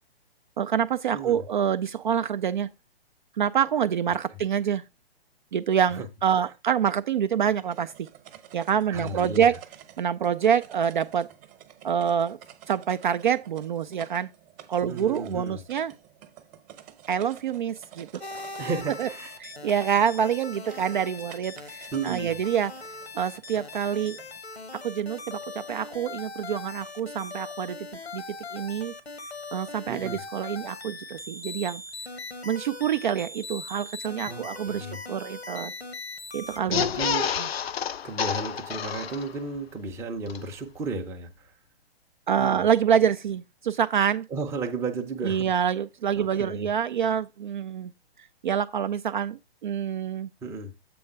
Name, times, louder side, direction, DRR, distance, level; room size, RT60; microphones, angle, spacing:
voice 1, 0.6-2.7 3.4-4.8 5.5-8.1 8.5-9.6 10.0-11.3 11.8-12.4 12.7-14.3 14.7-15.9 17.1-18.1 19.0-19.1 19.4-22.7 23.1-24.2 24.8-27.8 28.1-28.2 28.5-28.9 29.5-31.8 32.4-35.7 36.3-36.9 37.4-37.5 42.3-44.3 45.2-47.9 48.4-50.3, right 8 dB, 50° right, 0.4 m, -26 dB
voice 2, 1.1-1.4 5.9-6.1 6.3-6.5 8.9-9.5 14.9-15.6 18.6-19.4 21.9-22.4 29.9-30.2 34.3-35.0 36.7-37.4 38.0-41.5 42.4-42.7 44.3-45.5 46.2-46.7 50.4-50.8, right 3 dB, 10° right, 0.6 m, -34 dB
sound 1, 7.4-24.4, right 11 dB, 30° right, 1.0 m, -51 dB
sound 2, 18.2-36.6, left 3 dB, 90° left, 1.2 m, -40 dB
sound 3, 36.6-39.6 39.9-40.0 40.3-40.4, left 8 dB, 70° left, 0.5 m, -29 dB
7.7 x 3.5 x 5.4 m
figure-of-eight pair, 125°, 31 cm